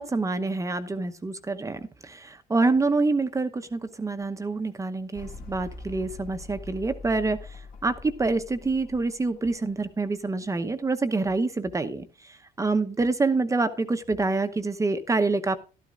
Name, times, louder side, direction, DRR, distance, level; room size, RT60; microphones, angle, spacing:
voice 1, 0.0-7.4 7.8-12.0 12.6-15.6, right 3 dB, 20° right, 8 dB, 0.9 m, -26 dB
sound 1, 5.1-9.7, left 3 dB, 50° left, 2.0 m, -43 dB
12.5 x 12.0 x 2.5 m, 0.34 s
cardioid pair, 110°, 17 cm